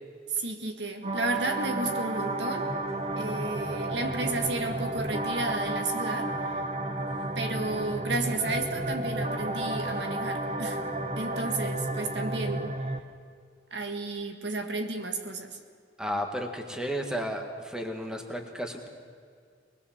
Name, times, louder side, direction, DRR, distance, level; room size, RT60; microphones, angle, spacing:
voice 1, 0.3-2.7 3.2-6.6 7.4-10.8 11.2-12.7 13.7-15.6, right 2 dB, 65° right, 6 dB, 1.9 m, -32 dB
sound 1, 1.0-13.0, right 2 dB, 35° right, 1.3 m, -32 dB
voice 2, 16.0-18.9, equal, 5° right, 4 dB, 1.8 m, -33 dB
23.5 x 20.5 x 7.4 m, 2.2 s
head